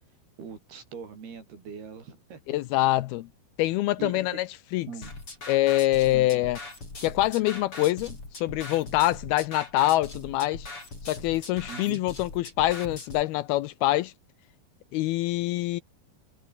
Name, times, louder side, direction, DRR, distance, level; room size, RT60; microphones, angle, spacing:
voice 1, 0.4-2.4 4.0-4.2 4.9-5.1 6.1-6.3 11.7-12.1, right 6 dB, 75° right, 6.9 m, -41 dB
voice 2, 2.5-3.3 3.6-4.5 4.7-4.9 5.5-6.6 7.0-10.7 11.1-14.1 14.9-15.8, left 16 dB, 80° left, 2.6 m, -25 dB
sound 1, 5.0-13.2, left 3 dB, 35° left, 8.2 m, -41 dB
omnidirectional pair, 4.5 m